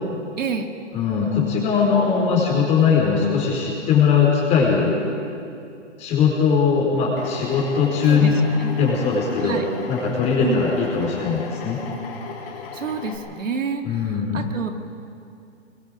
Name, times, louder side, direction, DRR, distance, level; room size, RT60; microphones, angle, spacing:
voice 1, 0.4-0.7 8.1-8.3 8.6-8.8 9.4-9.7 10.4-10.7 12.7-14.7, right 5 dB, 85° right, 4 dB, 2.2 m, -28 dB
voice 2, 0.9-4.9 6.0-8.4 8.7-9.6 9.9-11.8 13.8-14.4, left 6 dB, 20° left, -2 dB, 4.5 m, -20 dB
Drill, 7.2-13.2, left 5 dB, 50° left, 4.0 m, -36 dB
25.0 x 21.5 x 5.0 m, 2.5 s
hypercardioid pair, 160°, 37 cm